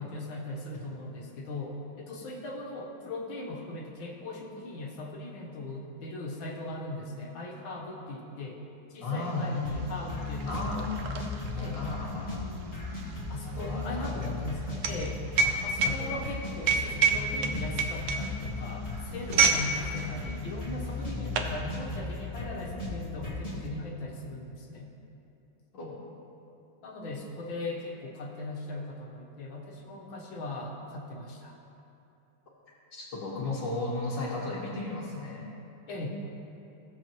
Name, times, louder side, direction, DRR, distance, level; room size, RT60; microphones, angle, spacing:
voice 1, 0.0-8.6 8.9-10.9 11.3-11.8 13.3-15.3 15.6-24.9 26.8-31.6 35.9-36.1, left 2 dB, 85° left, -1 dB, 1.9 m, -39 dB
voice 2, 9.0-9.7 10.5-10.8 11.5-12.5 13.4-14.0 15.8-16.1 25.7-26.0 32.9-35.5, left 2 dB, 65° left, -8 dB, 1.9 m, -34 dB
sound 1, 9.4-9.5 9.7-19.7 20.0-20.2 20.9-21.6, right 5 dB, 80° right, 0.7 m, -28 dB
sound 2, 9.6-23.7, left 3 dB, 20° left, 1.5 m, -36 dB
15.5 x 7.5 x 3.0 m, 2.8 s
omnidirectional pair, 2.1 m